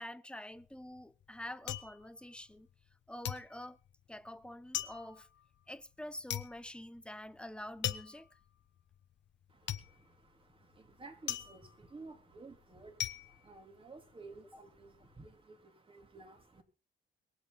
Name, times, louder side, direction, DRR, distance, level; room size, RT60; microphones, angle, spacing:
voice 1, 0.0-2.7 3.1-3.8 4.1-5.3 5.7-8.3, left 1 dB, 5° left, 1.0 m, -47 dB
sound 1, 0.6-2.9 3.2-14.4 14.7-15.3, left 11 dB, 65° left, 1.1 m, -42 dB
voice 2, 9.5-16.6, right 3 dB, 25° right, 3.5 m, -54 dB
23.0 x 8.1 x 4.2 m
cardioid pair, 90°, 20 cm